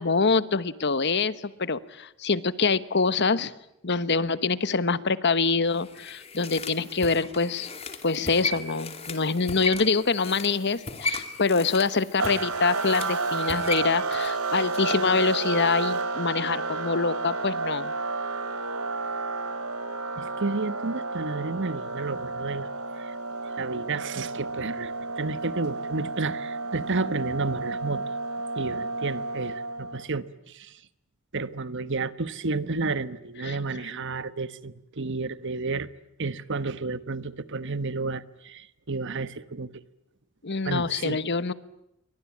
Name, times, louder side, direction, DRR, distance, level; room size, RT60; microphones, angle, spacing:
voice 1, 0.0-3.5 3.8-7.7 8.0-17.9 33.4-33.6 40.4-41.5, left 4 dB, 55° left, 1.2 m, -25 dB
sound 1, 5.7-15.1 15.4-15.5, left 3 dB, 30° left, 3.0 m, -36 dB
sound 2, 12.2-30.0, right 3 dB, 85° right, 3.2 m, -31 dB
voice 2, 20.2-22.7 23.0-23.1 23.6-28.0 28.6-30.8 31.3-35.9 36.2-39.7 40.6-41.2, right 3 dB, 60° right, 1.2 m, -31 dB
29.5 x 23.5 x 8.6 m
head